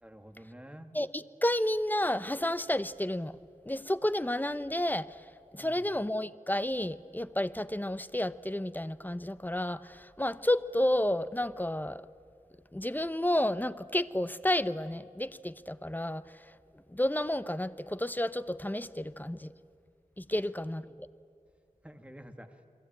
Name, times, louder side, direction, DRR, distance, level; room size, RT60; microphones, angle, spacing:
voice 1, 0.0-0.9 5.5-5.8 20.3-20.4 21.8-22.6, equal, 10° right, 2.0 m, -49 dB
voice 2, 0.9-3.4 3.7-5.2 5.5-12.0 12.7-16.2 16.9-19.5 20.2-20.9, left 1 dB, 15° left, 0.8 m, -31 dB
29.5 x 22.0 x 8.9 m
wide cardioid pair, 70°, 14 cm